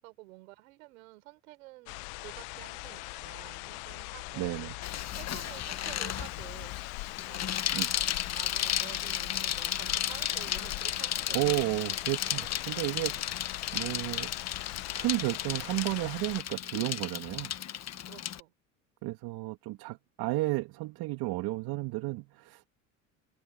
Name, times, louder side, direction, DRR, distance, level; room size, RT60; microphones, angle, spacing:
voice 1, 0.0-4.6 5.1-6.7 7.2-7.7 8.3-11.6 12.8-13.3 18.1-18.5, right 21 dB, 80° right, 5.9 m, -50 dB
sound 1, 1.9-16.4, left 25 dB, 70° left, 0.9 m, -41 dB
voice 2, 4.3-4.7 7.7-7.9 11.3-13.3 13.7-14.3 14.9-17.5 19.0-22.7, right 21 dB, 65° right, 2.6 m, -32 dB
Bicycle, 4.8-18.4, left 10 dB, 40° left, 1.3 m, -34 dB
open air
hypercardioid pair, 75°, 40 cm